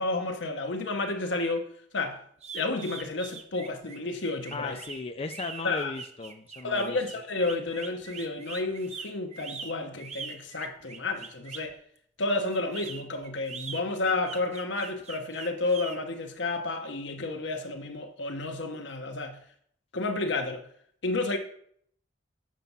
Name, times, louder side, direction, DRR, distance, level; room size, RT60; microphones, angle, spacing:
voice 1, 0.0-1.7 1.9-2.2 2.5-4.8 5.6-5.9 6.6-11.8 12.2-19.4 19.9-20.6 21.0-21.4, left 2 dB, 70° left, 1.0 m, -31 dB
sound 1, 2.4-11.7 12.5-16.0, right 5 dB, 35° right, 0.8 m, -42 dB
voice 2, 4.5-7.0, left 3 dB, 35° left, 0.5 m, -36 dB
7.5 x 4.7 x 5.5 m
head